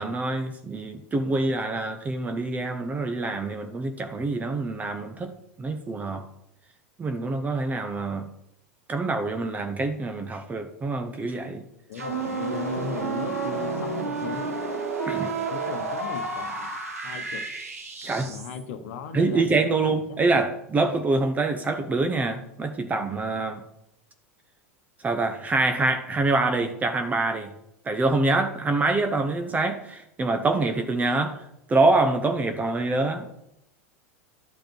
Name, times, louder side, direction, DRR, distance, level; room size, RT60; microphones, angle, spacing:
voice 1, 0.0-6.2 7.0-8.3 8.9-11.6 15.0-15.4 18.0-18.4 19.1-23.6 25.0-27.5 27.8-33.3, right 3 dB, 20° right, 0.9 m, -25 dB
voice 2, 11.9-14.5 15.3-16.7 17.0-17.5 18.3-20.5 20.8-21.0, left 6 dB, 60° left, 1.0 m, -37 dB
sound 1, 11.9-18.6, right 4 dB, 80° right, 1.6 m, -31 dB
11.5 x 5.1 x 4.6 m
figure-of-eight pair, 90°, 8 cm